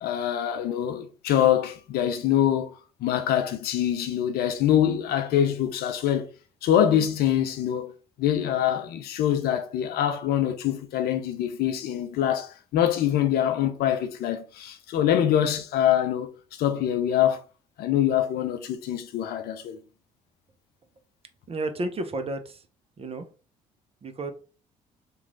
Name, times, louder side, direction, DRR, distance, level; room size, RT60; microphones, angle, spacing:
voice 1, 0.0-6.3 6.6-7.9 8.2-17.4 17.8-19.8, left 10 dB, 65° left, 0.5 m, -24 dB
voice 2, 21.5-22.6 23.0-23.3 24.0-24.3, right 2 dB, 35° right, 0.7 m, -31 dB
3.0 x 2.3 x 3.8 m
hypercardioid pair, 55°, 17 cm